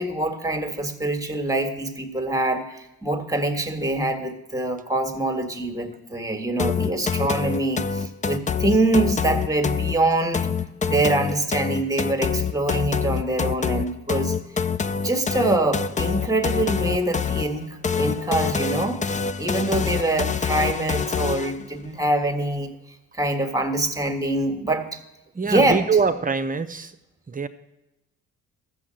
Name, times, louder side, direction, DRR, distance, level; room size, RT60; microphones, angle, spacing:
voice 1, 0.0-10.5 10.8-14.4 15.0-19.0 19.4-22.7 23.1-25.0 25.4-25.8, right 2 dB, 10° right, 6 dB, 1.6 m, -24 dB
sound 1, 6.6-21.6, left 6 dB, 25° left, 0.5 m, -26 dB
voice 2, 25.3-27.0 27.3-27.5, right 5 dB, 30° right, 10 dB, 0.9 m, -24 dB
12.5 x 7.7 x 7.6 m, 0.95 s
cardioid pair, 90°, 30 cm